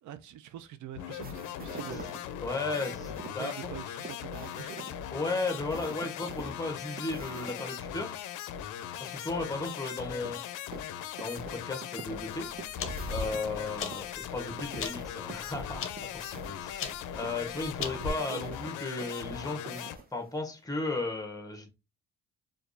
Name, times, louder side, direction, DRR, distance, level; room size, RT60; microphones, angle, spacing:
voice 1, 0.0-2.1 3.4-4.8 18.3-18.5, right 10 dB, 75° right, 0.5 m, -44 dB
sound 1, 0.9-20.0, left 10 dB, 85° left, 0.5 m, -40 dB
sound 2, 1.2-7.6 7.9-8.0 10.2-13.4 13.9-20.4, right 5 dB, 30° right, 0.8 m, -47 dB
voice 2, 2.4-3.5 5.1-8.2 9.0-10.4 11.2-12.5 13.1-16.3 16.6-19.8 20.1-21.7, left 3 dB, 10° left, 1.0 m, -35 dB
sound 3, 12.2-18.1, left 5 dB, 45° left, 0.7 m, -39 dB
4.5 x 2.4 x 2.5 m
cardioid pair, 90°, 30 cm